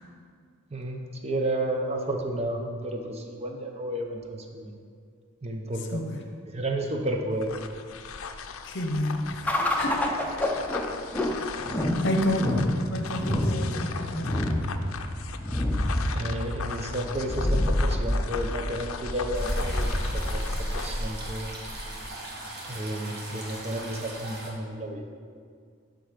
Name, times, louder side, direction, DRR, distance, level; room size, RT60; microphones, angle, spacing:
voice 1, 0.7-4.8 5.4-6.0 6.5-7.5 16.1-21.5 22.7-25.0, right 1 dB, 30° right, 3 dB, 0.7 m, -32 dB
voice 2, 5.9-6.2 8.6-9.5 9.8-10.0 12.0-14.6, left 1 dB, 55° left, 4 dB, 0.8 m, -29 dB
sound 1, 7.3-21.0, left 5 dB, 75° left, 0.5 m, -38 dB
sound 2, 9.5-22.1, left 1 dB, 10° left, 0.6 m, -28 dB
sound 3, 19.3-24.5, right 1 dB, 50° right, 1.6 m, -40 dB
11.5 x 3.9 x 5.1 m, 2.1 s
head